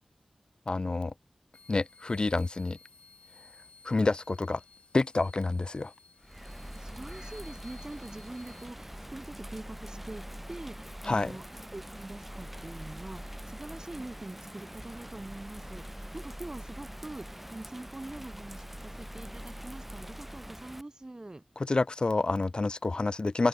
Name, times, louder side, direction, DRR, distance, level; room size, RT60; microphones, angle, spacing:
voice 1, 0.7-1.1 1.7-2.8 3.8-4.6 4.9-5.9 11.1-11.3 21.6-23.5, left 3 dB, 45° left, 0.3 m, -28 dB
sound 1, 1.5-8.7, left 4 dB, 80° left, 5.2 m, -57 dB
Bird vocalization bird call bird song / Rain, 6.2-20.8, equal, 5° right, 0.8 m, -44 dB
voice 2, 6.7-21.4, right 2 dB, 35° right, 3.9 m, -44 dB
open air
cardioid pair, 50°, 2 cm